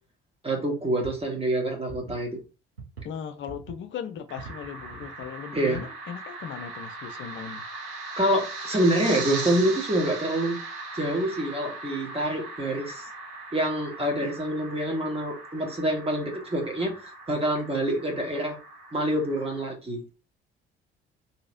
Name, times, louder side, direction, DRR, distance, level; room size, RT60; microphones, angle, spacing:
voice 1, 0.4-2.3 5.5-5.8 8.2-10.6 10.9-13.0 13.5-18.6 18.9-20.1, right 1 dB, 20° right, 1.2 m, -26 dB
sound 1, 1.0-2.4 2.8-3.1 3.4-3.9 4.4-5.3 5.7-5.8 6.8-6.9, right 4 dB, 90° right, 0.7 m, -43 dB
voice 2, 3.0-7.7, left 8 dB, 40° left, 0.5 m, -38 dB
sound 2, 4.3-19.6, right 3 dB, 60° right, 1.1 m, -39 dB
3.0 x 2.7 x 2.5 m
figure-of-eight pair, 45°, 30 cm